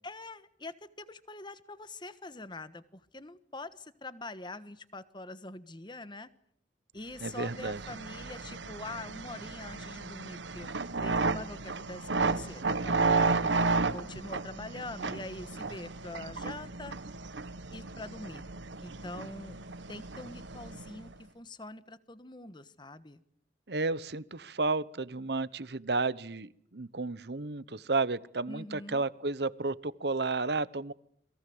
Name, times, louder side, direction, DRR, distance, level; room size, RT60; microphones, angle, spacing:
voice 1, 0.0-6.3 6.9-10.7 10.9-13.5 13.9-17.0 17.7-18.5 18.8-19.6 19.9-23.2 28.5-29.0, left 2 dB, 25° left, 14 dB, 1.3 m, -44 dB
voice 2, 7.2-7.8 23.7-30.9, right 3 dB, 60° right, 18 dB, 1.0 m, -32 dB
sound 1, 7.3-21.1, right 4 dB, 80° right, 1.3 m, -33 dB
29.5 x 22.0 x 7.9 m, 0.67 s
head